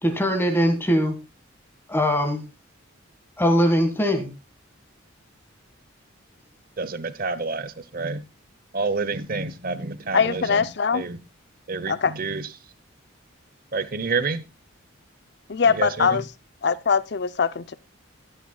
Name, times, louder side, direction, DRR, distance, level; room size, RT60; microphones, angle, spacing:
voice 1, 0.0-1.1 1.9-2.4 3.4-4.3, equal, 10° left, 1.8 m, -21 dB
voice 2, 6.8-8.2 8.7-11.2 11.7-12.5 13.7-14.4 15.7-16.2, right 4 dB, 45° right, 0.9 m, -29 dB
voice 3, 10.1-11.0 11.9-12.1 15.5-16.3 16.6-17.7, left 5 dB, 55° left, 0.6 m, -22 dB
16.0 x 9.1 x 2.3 m
head